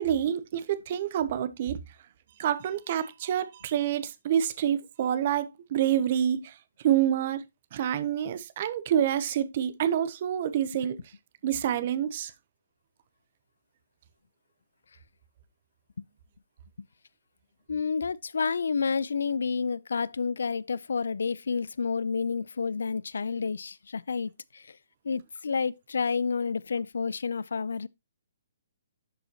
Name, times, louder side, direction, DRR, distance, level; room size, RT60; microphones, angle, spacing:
voice 1, 0.0-1.8 2.4-6.5 6.8-7.4 7.7-11.0 11.4-12.3, right 10 dB, 30° right, 0.8 m, -27 dB
voice 2, 17.7-24.6 25.0-27.9, left 5 dB, 85° left, 0.4 m, -30 dB
11.0 x 5.5 x 2.9 m
hypercardioid pair, 175°, 0 cm